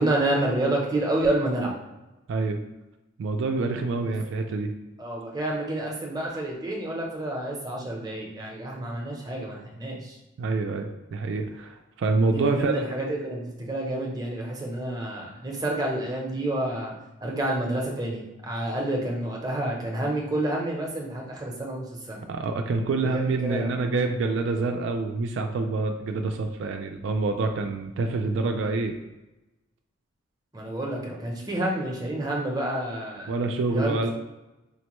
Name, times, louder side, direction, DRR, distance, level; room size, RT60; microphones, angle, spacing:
voice 1, 0.0-1.7 4.0-4.1 5.0-10.2 12.3-16.9 17.2-22.2 23.0-23.7 30.5-33.3 33.7-34.1, right 1 dB, 20° right, -1 dB, 0.6 m, -29 dB
voice 2, 2.3-2.6 3.2-4.7 10.4-12.8 22.3-29.0 33.3-34.1, right 3 dB, 70° right, 4 dB, 0.3 m, -26 dB
5.0 x 2.1 x 3.0 m, 1.0 s
head